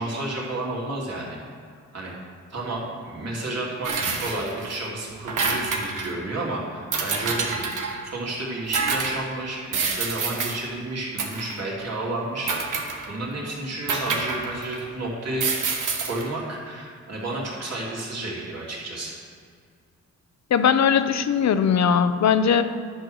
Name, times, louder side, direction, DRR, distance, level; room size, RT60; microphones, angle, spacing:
voice 1, 0.0-1.4 1.9-2.1 2.5-7.7 8.0-15.4 16.1-19.2, right 2 dB, 55° right, -4 dB, 3.0 m, -31 dB
sound 1, 3.8-4.8 5.1-6.1 6.9-8.0 8.7-9.2 9.7-10.6 11.2-11.6 12.5-13.2 13.9-14.9 15.4-16.3, right 4 dB, 85° right, 1.4 m, -27 dB
voice 2, 20.5-22.6, left 7 dB, 60° left, 11 dB, 0.7 m, -19 dB
11.5 x 6.5 x 6.3 m, 2.1 s
wide cardioid pair, 115°, 30 cm